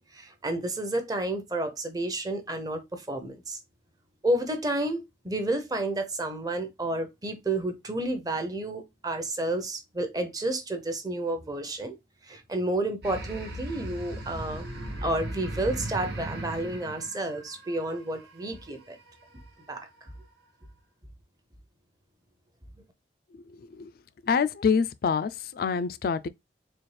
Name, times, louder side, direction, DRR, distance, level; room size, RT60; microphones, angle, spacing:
voice 1, 0.1-3.6 4.2-12.0 12.3-14.7 15.0-19.0 19.7-19.9, right 1 dB, 20° right, 0.7 m, -31 dB
sound 1, 13.0-18.0, right 1 dB, 60° right, 0.9 m, -37 dB
voice 2, 24.3-26.3, left 6 dB, 55° left, 0.3 m, -26 dB
4.2 x 2.4 x 3.2 m
head